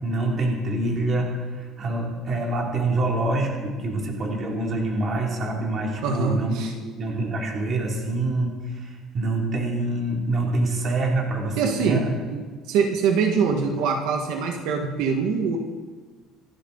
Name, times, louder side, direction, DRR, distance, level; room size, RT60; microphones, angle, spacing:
voice 1, 0.0-12.1, right 2 dB, 30° right, -1 dB, 3.0 m, -26 dB
voice 2, 6.0-6.7 11.6-12.1 12.3-12.4 12.7-15.6, right 5 dB, 75° right, 2 dB, 1.9 m, -23 dB
27.0 x 11.5 x 4.1 m, 1.4 s
cardioid pair, 175°, 0 cm